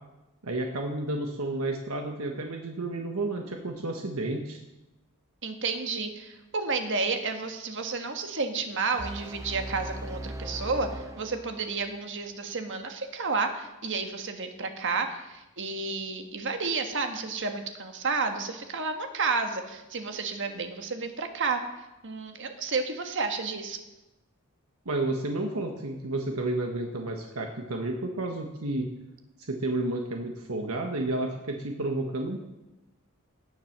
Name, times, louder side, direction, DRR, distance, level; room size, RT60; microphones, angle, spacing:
voice 1, 0.4-4.6 24.8-28.9 29.4-32.4, right 2 dB, 75° right, 3 dB, 1.4 m, -31 dB
voice 2, 5.4-21.6 22.0-23.8, right 4 dB, 60° right, 6 dB, 1.5 m, -31 dB
sound 1, 9.0-12.0, right 1 dB, 15° right, 0.5 m, -39 dB
18.0 x 7.6 x 6.6 m, 1.0 s
head